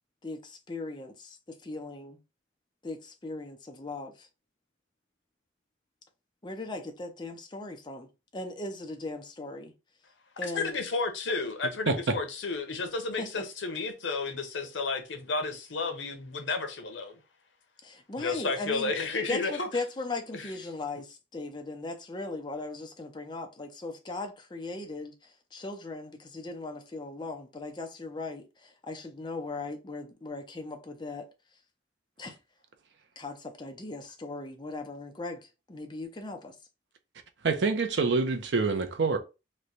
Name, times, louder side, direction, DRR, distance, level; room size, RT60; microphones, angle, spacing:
voice 1, 0.2-2.2 2.8-4.3 6.4-9.7 10.4-10.7 13.2-13.4 17.8-18.9 19.3-31.3 32.2-32.4 33.2-36.6, left 2 dB, 25° left, 0.6 m, -38 dB
voice 2, 10.4-17.2 18.2-19.7 20.3-20.5, left 3 dB, 80° left, 0.8 m, -32 dB
voice 3, 11.9-12.2 37.4-39.2, right 4 dB, 70° right, 0.6 m, -26 dB
3.1 x 2.2 x 3.9 m
head